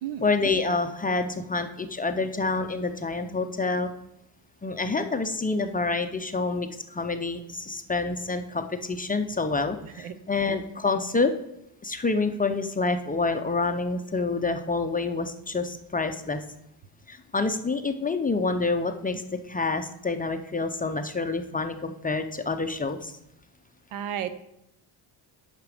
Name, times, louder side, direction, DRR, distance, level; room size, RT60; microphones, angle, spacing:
voice 1, 0.2-3.9 4.6-11.3 11.8-16.4 17.1-23.1, left 3 dB, 20° left, 7 dB, 0.5 m, -27 dB
voice 2, 9.8-10.2 23.9-24.3, right 10 dB, 75° right, 12 dB, 0.8 m, -33 dB
8.2 x 5.9 x 4.9 m, 0.81 s
cardioid pair, 105°, 49 cm